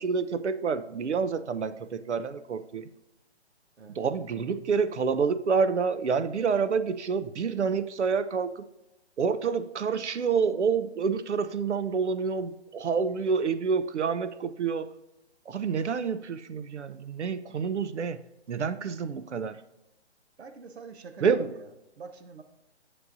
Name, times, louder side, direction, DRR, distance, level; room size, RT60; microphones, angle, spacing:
voice 1, 0.0-2.8 3.9-8.5 9.2-14.9 15.5-18.2 18.5-19.6 21.2-21.5, right 5 dB, 85° right, 0.7 m, -28 dB
voice 2, 20.4-22.4, right 4 dB, 70° right, 1.0 m, -46 dB
11.0 x 7.7 x 2.6 m
hypercardioid pair, 155°, 34 cm